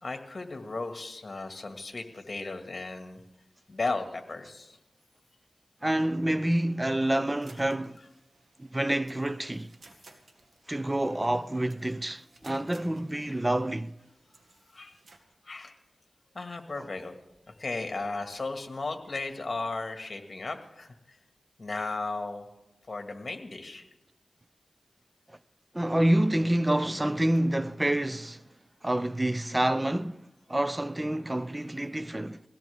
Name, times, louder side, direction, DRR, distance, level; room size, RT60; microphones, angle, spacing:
voice 1, 0.0-3.2 3.7-4.8 13.3-13.4 14.7-15.0 15.4-15.8 16.3-17.1 17.5-21.2 21.6-22.5 22.9-23.9, left 3 dB, 45° left, 1.9 m, -35 dB
voice 2, 5.8-8.0 8.6-9.7 10.7-13.9 16.8-16.9 25.3-25.4 25.7-28.4 28.8-32.4, right 1 dB, 20° right, 0.5 m, -28 dB
sound 1, 7.3-15.2, right 3 dB, 65° right, 1.7 m, -59 dB
21.0 x 16.5 x 3.6 m
cardioid pair, 50°, 0 cm